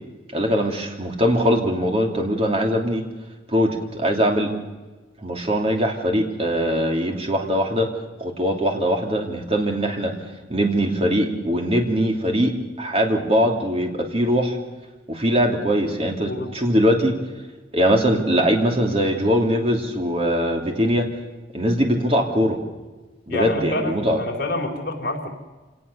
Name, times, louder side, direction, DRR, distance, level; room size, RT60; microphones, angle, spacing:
voice 1, 0.3-3.0 3.5-4.5 5.2-7.9 8.2-10.1 10.5-14.6 15.1-17.1 17.7-21.1 21.5-22.6 23.3-24.2, equal, 30° right, 2 dB, 3.0 m, -21 dB
voice 2, 23.3-25.3, left 1 dB, 55° left, 1 dB, 4.2 m, -27 dB
27.0 x 18.5 x 6.9 m, 1.2 s
head